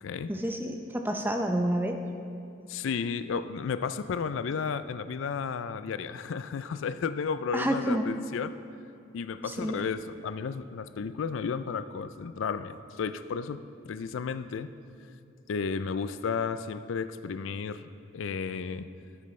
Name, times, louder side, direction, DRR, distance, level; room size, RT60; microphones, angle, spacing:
voice 1, 0.3-2.0 7.5-8.0 9.5-9.7, right 1 dB, 10° right, 4 dB, 0.5 m, -29 dB
voice 2, 2.7-8.6 9.1-13.6 13.9-14.7 15.5-18.9, left 5 dB, 85° left, 13 dB, 0.4 m, -33 dB
15.0 x 8.8 x 3.2 m, 2.5 s
head